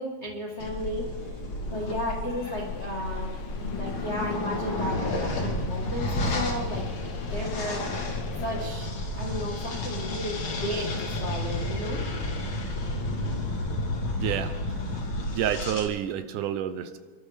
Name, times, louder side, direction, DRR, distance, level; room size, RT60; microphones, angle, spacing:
voice 1, 0.0-1.4 1.7-7.8 8.4-8.9 9.2-12.0, left 1 dB, 80° left, -2 dB, 0.6 m, -34 dB
sound 1, 0.6-15.9, left 1 dB, 45° left, 1.9 m, -31 dB
sound 2, 2.4-8.7, left 5 dB, 65° left, 2.0 m, -43 dB
sound 3, 8.3-13.6, left 1 dB, 15° right, 1.1 m, -46 dB
voice 2, 14.1-14.5 15.3-17.0, right 10 dB, 75° right, 10 dB, 2.0 m, -29 dB
28.0 x 12.5 x 3.5 m, 1.4 s
omnidirectional pair, 4.0 m